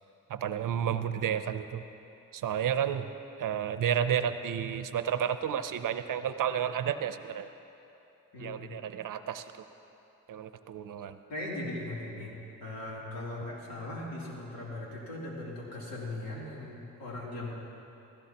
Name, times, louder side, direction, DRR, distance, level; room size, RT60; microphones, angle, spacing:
voice 1, 0.3-1.8 2.3-3.1 3.4-7.5 8.4-9.4 10.3-11.2, right 9 dB, 65° right, 11 dB, 0.6 m, -31 dB
voice 2, 8.3-8.7 11.3-12.3 12.6-17.5, left 1 dB, 85° left, -5 dB, 3.2 m, -39 dB
16.0 x 15.0 x 2.9 m, 2.9 s
cardioid pair, 65°, 34 cm